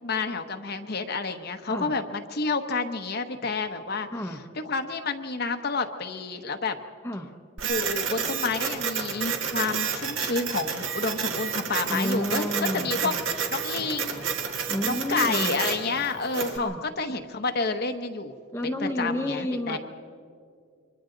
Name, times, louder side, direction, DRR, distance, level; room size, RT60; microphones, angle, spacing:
voice 1, 0.0-4.1 4.6-6.8 7.6-13.1 13.5-14.2 14.5-18.3 18.8-19.8, left 4 dB, 45° left, 6 dB, 1.0 m, -29 dB
Printer, 7.6-16.6, right 6 dB, 60° right, 1.9 m, -30 dB
voice 2, 11.8-13.2 14.7-15.5 16.5-16.8 18.5-19.8, equal, 10° left, 3 dB, 0.9 m, -30 dB
29.0 x 24.0 x 3.9 m, 2.3 s
head